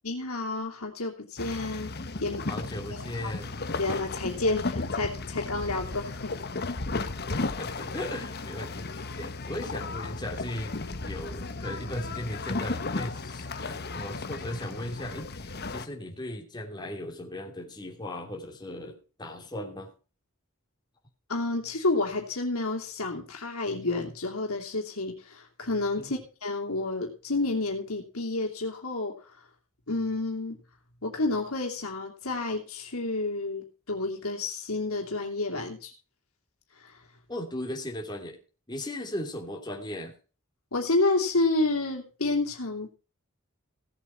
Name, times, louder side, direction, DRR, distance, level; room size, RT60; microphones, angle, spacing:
voice 1, 0.0-1.9 2.2-2.5 3.2-3.3 3.8-6.4 21.3-29.1 29.9-30.6 31.0-35.9 36.8-36.9 40.7-42.9, left 2 dB, 80° left, 1 dB, 2.9 m, -30 dB
sound 1, 1.4-15.9, left 3 dB, 50° left, 1.2 m, -35 dB
voice 2, 2.5-3.6 7.3-8.9 9.2-19.9 26.0-26.2 37.3-38.4 38.7-40.1, left 1 dB, 20° left, 1 dB, 2.9 m, -37 dB
17.0 x 7.9 x 4.5 m, 0.35 s
head